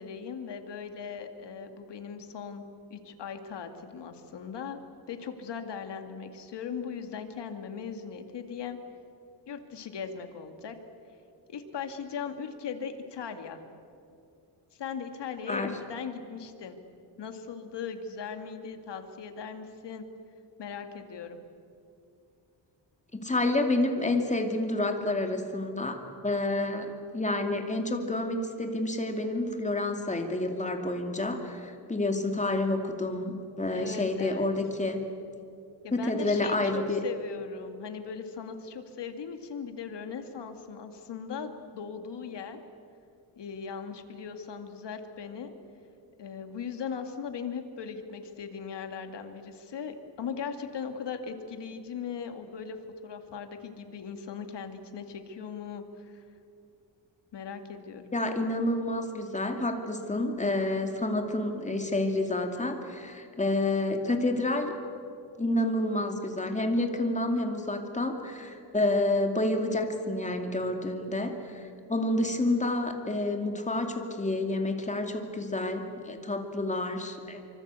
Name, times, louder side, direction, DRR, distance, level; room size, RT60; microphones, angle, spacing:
voice 1, 0.0-2.6 2.9-4.8 5.1-8.8 9.5-10.8 11.5-13.6 14.7-16.8 17.2-20.0 20.6-21.4 33.7-34.5 35.8-42.6 43.4-45.5 46.2-52.8 53.0-56.2 57.3-58.1, left 6 dB, 75° left, 6 dB, 2.4 m, -39 dB
voice 2, 23.1-35.0 35.9-37.0 58.1-64.7 65.4-77.4, left 2 dB, 15° left, 4 dB, 2.6 m, -29 dB
25.0 x 25.0 x 8.4 m, 2.6 s
wide cardioid pair, 140°, 42 cm